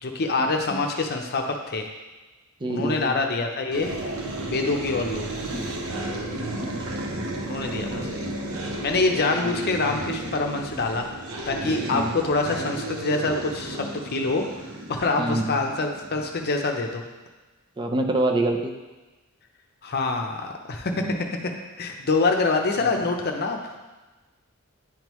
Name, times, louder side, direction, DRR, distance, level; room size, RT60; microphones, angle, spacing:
voice 1, 0.0-1.9 2.7-3.9 4.5-5.4 7.4-8.4 8.8-11.1 11.5-17.0 19.8-23.6, left 3 dB, 50° left, 3 dB, 0.7 m, -26 dB
voice 2, 2.6-3.2 5.5-5.7 6.6-6.7 6.9-7.1 11.9-12.2 15.2-15.6 17.8-18.7 20.9-21.2, right 2 dB, 20° right, 3 dB, 0.5 m, -26 dB
sound 1, 3.7-16.6, right 2 dB, 80° right, 0.8 m, -33 dB
10.0 x 3.6 x 3.1 m, 1.2 s
head